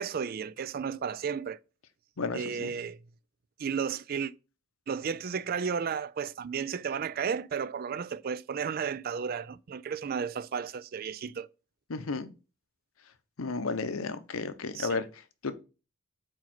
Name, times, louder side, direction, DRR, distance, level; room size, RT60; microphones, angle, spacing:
voice 1, 0.0-1.6 2.3-3.0 3.6-4.3 4.9-11.5 14.7-15.0, right 6 dB, 45° right, 0.3 m, -33 dB
voice 2, 2.2-2.7 11.9-12.3 13.4-15.5, left 4 dB, 85° left, 0.7 m, -33 dB
4.8 x 4.4 x 5.9 m
head